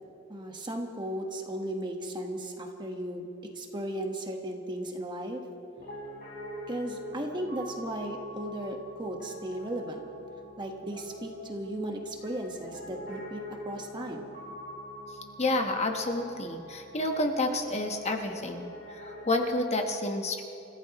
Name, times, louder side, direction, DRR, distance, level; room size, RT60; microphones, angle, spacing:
voice 1, 0.3-3.3 3.5-5.4 6.7-10.0 10.6-14.3, right 1 dB, 20° right, 2 dB, 1.4 m, -36 dB
Piano, 5.8-19.5, equal, 50° left, 3.6 m, -45 dB
voice 2, 15.4-20.4, left 2 dB, 30° left, 4 dB, 1.1 m, -29 dB
29.5 x 15.0 x 3.1 m, 2.8 s
head